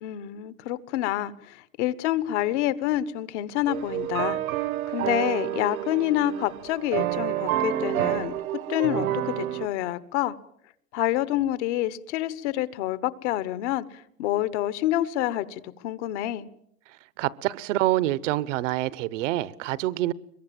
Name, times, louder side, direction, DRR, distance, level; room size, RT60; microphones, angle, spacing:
voice 1, 0.0-4.4 4.9-8.4 8.7-10.4 10.9-16.5, left 13 dB, 55° left, 1.2 m, -27 dB
sound 1, 3.7-9.7, right 12 dB, 90° right, 1.7 m, -29 dB
voice 2, 17.2-20.1, right 16 dB, 60° right, 0.9 m, -26 dB
23.0 x 22.5 x 7.6 m
supercardioid pair, 155°, 41 cm